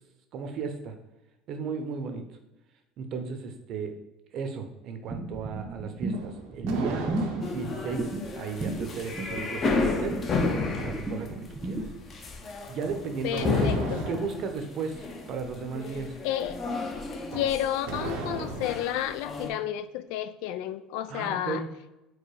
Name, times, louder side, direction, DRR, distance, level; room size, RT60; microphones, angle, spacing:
voice 1, 0.3-1.0 1.5-2.3 3.0-4.0 4.3-7.1 7.5-10.2 10.8-11.9 12.7-13.8 14.1-16.2 21.1-21.7, right 5 dB, 55° right, 6 dB, 0.7 m, -35 dB
sound 1, 5.1-11.9, right 2 dB, 20° right, 0.6 m, -33 dB
sound 2, 6.0-7.8 12.8-14.4 17.2-18.9, right 3 dB, 85° right, 0.9 m, -36 dB
sound 3, 7.4-19.5, left 3 dB, 35° left, 0.8 m, -32 dB
voice 2, 13.2-14.0 16.2-16.6 17.3-21.6, left 11 dB, 75° left, 12 dB, 0.3 m, -31 dB
4.7 x 2.2 x 4.7 m, 0.99 s
supercardioid pair, 115°, 0 cm